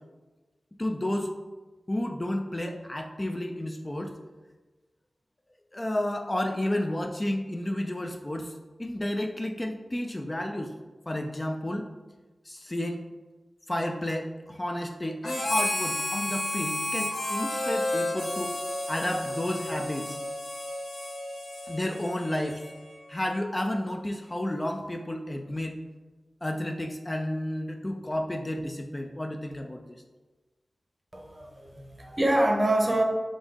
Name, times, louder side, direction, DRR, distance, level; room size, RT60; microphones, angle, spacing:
voice 1, 0.8-1.3 1.9-4.2 5.7-8.5 8.8-10.7 11.1-11.9 12.5-13.0 13.7-18.5 18.9-20.2 21.7-22.6 23.1-25.8 26.4-30.0, left 1 dB, 25° left, 4 dB, 0.3 m, -31 dB
Harmonica, 15.2-23.0, left 1 dB, 75° left, 1.5 m, -32 dB
voice 2, 31.1-33.0, right 1 dB, 30° right, 2 dB, 0.7 m, -25 dB
5.1 x 2.6 x 3.5 m, 1.2 s
wide cardioid pair, 75°, 0 cm